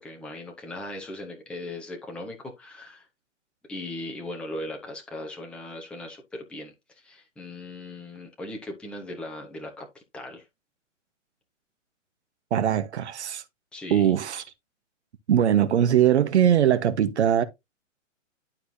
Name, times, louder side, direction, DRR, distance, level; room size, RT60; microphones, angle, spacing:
voice 1, 0.0-3.1 3.7-9.9 10.1-10.4 13.7-14.1, left 1 dB, 5° left, 1.0 m, -38 dB
voice 2, 12.5-13.4 13.9-14.4 15.3-17.4, right 10 dB, 60° right, 1.2 m, -21 dB
11.5 x 4.6 x 2.7 m
hypercardioid pair, 145°, 39 cm